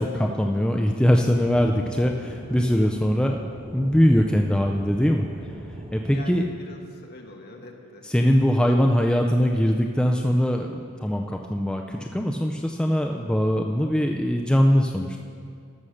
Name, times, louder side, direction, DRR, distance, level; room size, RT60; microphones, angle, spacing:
voice 1, 0.0-3.4 3.7-5.3 5.9-6.4 8.0-15.2, equal, 5° left, 2 dB, 0.4 m, -22 dB
Aircraft / Engine, 1.3-6.3, equal, 25° right, 1.2 m, -41 dB
voice 2, 6.1-8.7, left 2 dB, 50° left, 1 dB, 1.4 m, -44 dB
14.0 x 6.4 x 6.5 m, 2.2 s
head